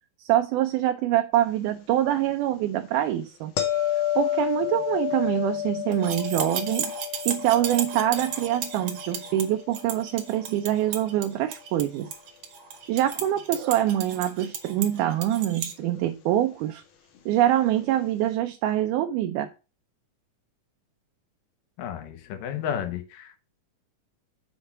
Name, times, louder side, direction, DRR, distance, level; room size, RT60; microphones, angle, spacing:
voice 1, 0.2-3.5 4.2-6.9 7.3-12.1 12.9-16.8 17.3-19.5, right 12 dB, 80° right, 2.0 m, -25 dB
sound 1, 3.6-10.6 15.8-16.0, left 11 dB, 65° left, 1.9 m, -31 dB
sound 2, 5.9-15.7, right 7 dB, 60° right, 1.7 m, -34 dB
voice 2, 21.8-23.4, left 9 dB, 90° left, 2.7 m, -32 dB
6.7 x 4.1 x 5.8 m
omnidirectional pair, 3.8 m